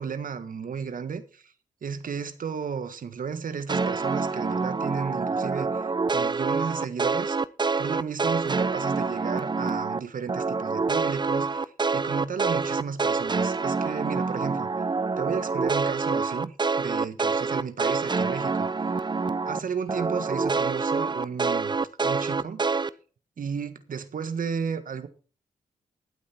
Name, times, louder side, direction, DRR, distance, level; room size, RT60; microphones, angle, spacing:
voice 1, 0.0-1.5 1.8-5.8 6.1-7.4 7.8-14.7 15.2-18.7 19.5-21.8 22.0-22.8 23.4-25.1, right 6 dB, 65° right, 1.6 m, -33 dB
sound 1, 3.7-10.0 10.3-19.6 19.9-22.9, right 4 dB, 30° right, 0.7 m, -26 dB
16.5 x 8.7 x 4.5 m
supercardioid pair, 50°, 15 cm